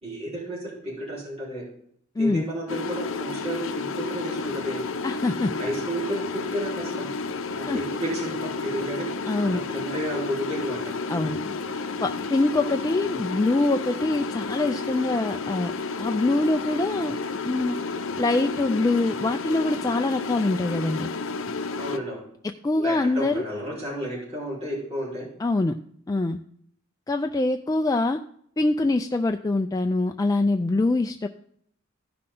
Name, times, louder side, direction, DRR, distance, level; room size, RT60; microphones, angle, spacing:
voice 1, 0.0-1.6 2.2-4.8 5.6-7.1 7.6-9.1 9.4-10.9 21.8-22.2 22.8-25.3, equal, 30° right, -7 dB, 4.5 m, -32 dB
voice 2, 2.2-2.5 5.0-5.5 7.7-7.8 9.3-9.6 11.1-11.4 12.0-15.7 16.0-17.2 17.4-17.8 18.2-21.1 22.6-23.4 25.4-25.8 26.1-26.4 27.1-28.2 28.6-31.3, left 2 dB, 15° left, 5 dB, 0.3 m, -24 dB
sound 1, 2.7-22.0, left 4 dB, 65° left, 0.7 m, -31 dB
15.0 x 5.8 x 3.8 m, 0.65 s
head